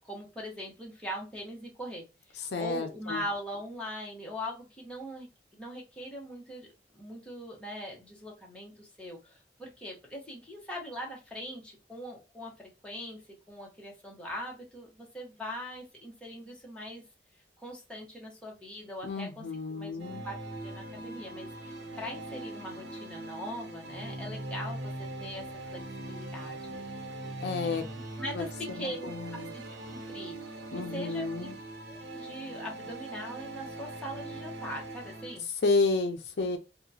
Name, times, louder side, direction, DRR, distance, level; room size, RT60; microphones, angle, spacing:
voice 1, 0.0-6.7 6.9-13.2 13.5-17.0 17.6-20.4 20.6-26.8 27.6-27.8 28.2-29.6 29.9-31.5 31.9-35.5, equal, 5° left, 1.0 m, -41 dB
voice 2, 2.4-3.2 19.0-20.2 27.4-27.9 28.3-28.4 28.8-29.5 30.7-31.5 35.6-36.6, left 3 dB, 70° left, 0.5 m, -31 dB
sound 1, 20.0-35.4, right 2 dB, 80° right, 0.8 m, -41 dB
2.8 x 2.3 x 2.7 m
head